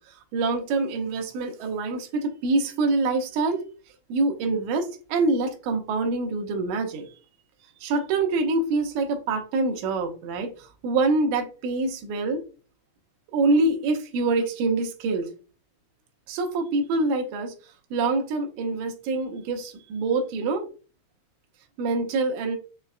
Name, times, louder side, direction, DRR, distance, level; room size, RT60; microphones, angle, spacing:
voice 1, 0.3-3.6 4.1-7.1 7.8-10.5 10.8-12.4 13.3-15.3 16.3-17.5 17.9-20.7 21.8-22.6, right 3 dB, 80° right, 1.8 m, -25 dB
5.5 x 2.2 x 2.3 m
omnidirectional pair, 4.0 m